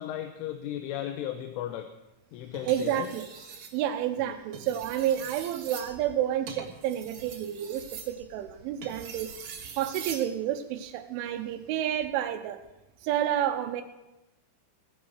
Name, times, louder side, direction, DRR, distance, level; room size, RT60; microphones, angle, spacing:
voice 1, 0.0-1.9 2.3-3.1 4.2-4.3, left 11 dB, 90° left, 6 dB, 3.4 m, -35 dB
sound 1, 2.5-3.8 4.4-10.3 11.8-12.0, right 6 dB, 55° right, 2.3 m, -43 dB
voice 2, 2.7-3.3 3.7-9.3 9.8-12.6 13.0-13.8, right 11 dB, 85° right, 6 dB, 3.4 m, -30 dB
18.0 x 10.5 x 6.4 m, 0.98 s
omnidirectional pair, 5.5 m